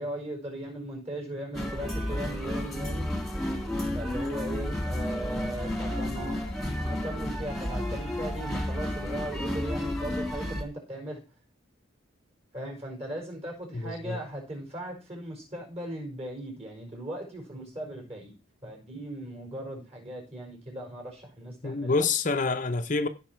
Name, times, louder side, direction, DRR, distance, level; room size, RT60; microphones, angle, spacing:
voice 1, 0.0-3.1 3.9-6.4 6.8-11.2 12.5-18.3 18.6-22.0, right 1 dB, 30° right, 5.0 m, -38 dB
sound 1, 1.5-10.6, left 1 dB, ahead, 1.9 m, -31 dB
voice 2, 13.7-14.2 21.6-23.1, left 4 dB, 40° left, 0.7 m, -27 dB
16.0 x 5.9 x 4.5 m
head